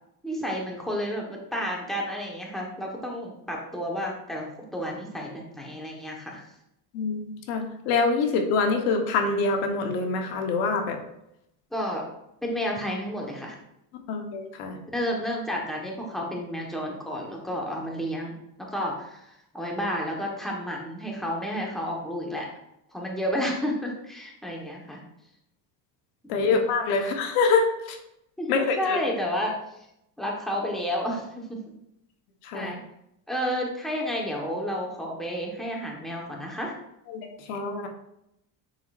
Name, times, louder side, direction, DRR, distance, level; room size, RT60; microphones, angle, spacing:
voice 1, 0.2-6.4 11.7-12.1 12.4-13.6 14.9-22.5 22.9-25.0 26.2-26.6 28.4-29.5 30.2-31.6 32.5-32.8 33.3-36.7, equal, ahead, -2 dB, 1.3 m, -31 dB
voice 2, 6.9-11.0 14.1-14.8 26.3-28.0 28.5-29.0 32.5-32.7 37.1-37.2 37.5-37.9, left 4 dB, 80° left, 4 dB, 1.3 m, -25 dB
10.5 x 4.2 x 2.5 m, 0.80 s
cardioid pair, 135°, 45 cm